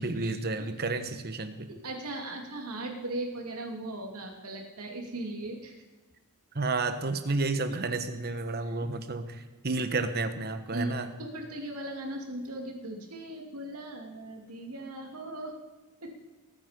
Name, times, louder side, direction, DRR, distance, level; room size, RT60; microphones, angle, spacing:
voice 1, 0.0-1.7 6.5-11.1, right 3 dB, 45° right, 9 dB, 1.1 m, -31 dB
voice 2, 1.7-5.8 7.7-7.8 8.6-8.7 10.7-15.5 16.0-16.1, right 1 dB, 90° right, 2 dB, 2.7 m, -38 dB
20.0 x 9.2 x 5.2 m, 1.2 s
head